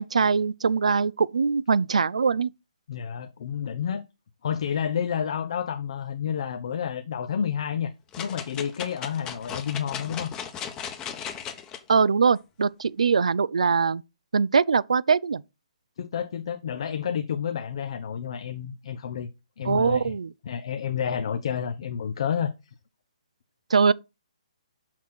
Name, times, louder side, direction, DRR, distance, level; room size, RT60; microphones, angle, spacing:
voice 1, 0.0-2.5 11.9-14.0 14.3-15.4 19.6-20.3 23.7-23.9, right 5 dB, 75° right, 0.4 m, -22 dB
voice 2, 2.9-4.0 4.4-10.3 16.0-19.3 19.6-20.1 20.4-22.5, left 8 dB, 55° left, 0.7 m, -30 dB
sound 1, 8.1-11.8 12.4-12.5, left 8 dB, 20° left, 1.0 m, -36 dB
6.1 x 5.9 x 4.3 m
figure-of-eight pair, 135°, 4 cm